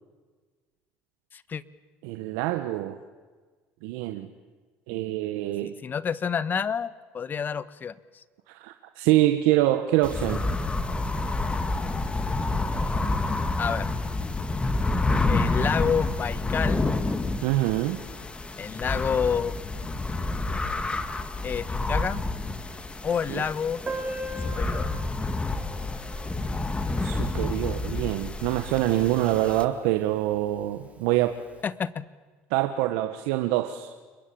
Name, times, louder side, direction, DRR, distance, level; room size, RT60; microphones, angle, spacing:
voice 1, 2.0-3.0 3.8-4.3 4.9-5.8 8.5-10.5 17.4-18.0 23.3-23.4 26.9-31.3 32.5-33.9, right 15 dB, 80° right, 8 dB, 1.5 m, -25 dB
voice 2, 5.6-8.0 13.6-13.9 15.3-16.9 18.6-19.5 21.4-22.2 23.0-23.8 24.4-24.9 31.6-32.1, left 7 dB, 35° left, 16 dB, 1.4 m, -29 dB
sound 1, 10.0-29.6, left 2 dB, 20° left, 2.4 m, -29 dB
Piano, 23.9-29.2 29.5-29.6 29.8-29.9 30.3-30.4 31.1-31.3, right 1 dB, 25° right, 5.7 m, -40 dB
29.5 x 22.5 x 8.8 m, 1.4 s
supercardioid pair, 85°, 5 cm